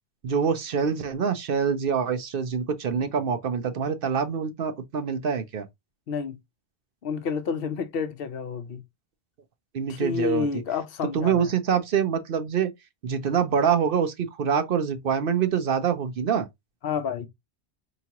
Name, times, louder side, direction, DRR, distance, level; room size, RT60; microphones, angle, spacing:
voice 1, 0.2-5.7 9.7-10.5 11.1-12.7 13.0-16.5, right 7 dB, 60° right, 0.8 m, -25 dB
voice 2, 6.1-6.4 7.0-8.8 9.9-11.5 16.8-17.3, left 6 dB, 65° left, 0.8 m, -29 dB
4.8 x 2.9 x 2.8 m
omnidirectional pair, 1.1 m